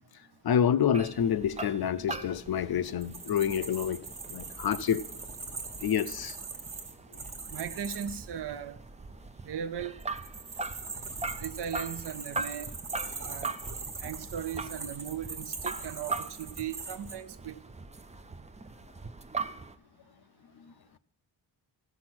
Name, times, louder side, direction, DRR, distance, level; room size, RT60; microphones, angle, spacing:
voice 1, 0.4-5.0 5.8-6.4, left 8 dB, 55° left, 0.5 m, -28 dB
sound 1, 0.9-19.8, right 3 dB, 20° right, 0.3 m, -41 dB
sound 2, 2.8-8.2 10.0-17.2, right 4 dB, 45° right, 1.3 m, -41 dB
voice 2, 7.5-8.8 9.5-10.0 11.4-12.7 13.2-13.5 14.0-17.6, right 8 dB, 65° right, 0.6 m, -37 dB
14.5 x 5.9 x 6.1 m
wide cardioid pair, 165°, 44 cm